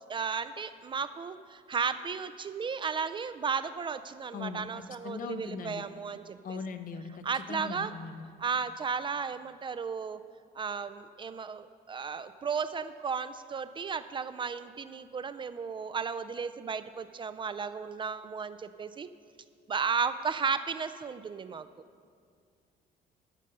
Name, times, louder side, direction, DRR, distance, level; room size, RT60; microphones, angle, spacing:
voice 1, 0.1-6.6 7.2-7.9 8.4-10.2 10.5-19.1 19.7-21.7, right 6 dB, 30° right, 11 dB, 0.4 m, -34 dB
voice 2, 4.3-4.7 5.0-5.8 6.4-8.2, left 5 dB, 55° left, 8 dB, 0.8 m, -39 dB
14.0 x 5.3 x 6.5 m, 2.2 s
cardioid pair, 110°, 17 cm